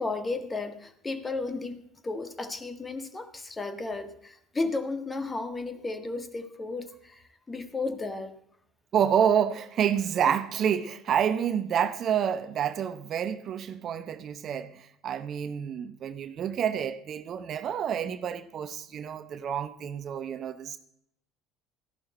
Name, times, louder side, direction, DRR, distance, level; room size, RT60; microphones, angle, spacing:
voice 1, 0.0-8.4 10.3-10.4, left 3 dB, 20° left, 1.5 m, -34 dB
voice 2, 8.9-20.8, right 8 dB, 45° right, 0.7 m, -28 dB
14.0 x 11.5 x 4.2 m
figure-of-eight pair, 65°, 0 cm